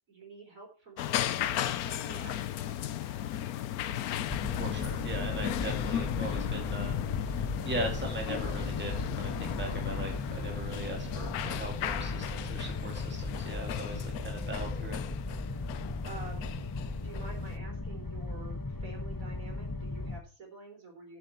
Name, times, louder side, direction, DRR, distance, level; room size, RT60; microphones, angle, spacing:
voice 1, 0.1-2.8 5.8-5.9 16.0-16.6 17.0-21.2, right 3 dB, 60° right, 1 dB, 4.5 m, -48 dB
sound 1, 1.0-17.6, left 11 dB, 75° left, 1.1 m, -35 dB
sound 2, 4.3-20.2, left 2 dB, 15° left, 0.8 m, -37 dB
voice 2, 4.6-15.0, right 1 dB, 5° right, 1 dB, 2.2 m, -39 dB
12.5 x 7.9 x 4.4 m, 0.34 s
omnidirectional pair, 1.6 m